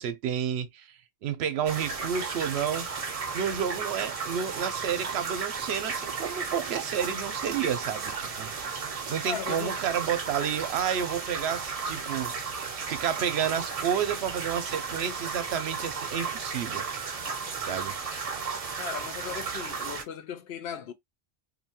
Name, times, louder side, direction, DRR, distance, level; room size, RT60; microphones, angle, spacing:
voice 1, 0.0-2.9 3.3-8.5 9.1-12.3 12.9-16.9 17.7-18.0, right 8 dB, 85° right, 0.8 m, -30 dB
sound 1, 1.7-20.0, right 5 dB, 40° right, 0.6 m, -34 dB
voice 2, 9.2-9.8 18.8-20.9, left 8 dB, 75° left, 0.8 m, -37 dB
2.7 x 2.2 x 2.7 m
omnidirectional pair, 1.1 m